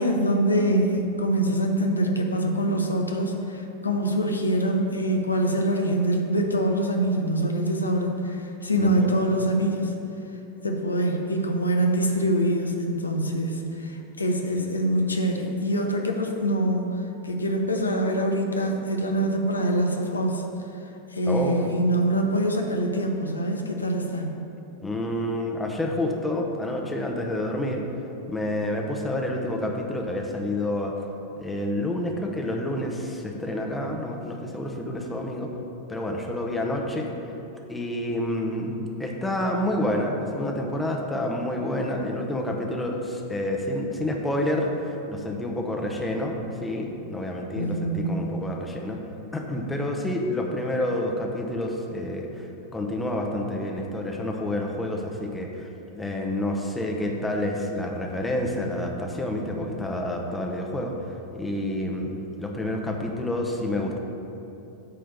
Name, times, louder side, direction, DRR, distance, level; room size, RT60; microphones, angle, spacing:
voice 1, 0.0-9.9 10.6-13.9 14.2-16.9 17.2-20.4 21.1-24.3 47.5-48.2, right 1 dB, 80° left, 2 dB, 0.7 m, -24 dB
voice 2, 8.8-9.1 21.2-21.6 24.8-27.8 28.3-30.9 31.4-35.5 35.9-37.1 37.7-38.7 39.0-49.0 49.3-52.5 52.7-60.9 61.3-62.1 62.4-64.0, left 1 dB, 10° left, 0 dB, 0.9 m, -28 dB
9.2 x 3.3 x 6.6 m, 2.9 s
figure-of-eight pair, 90°, 0 cm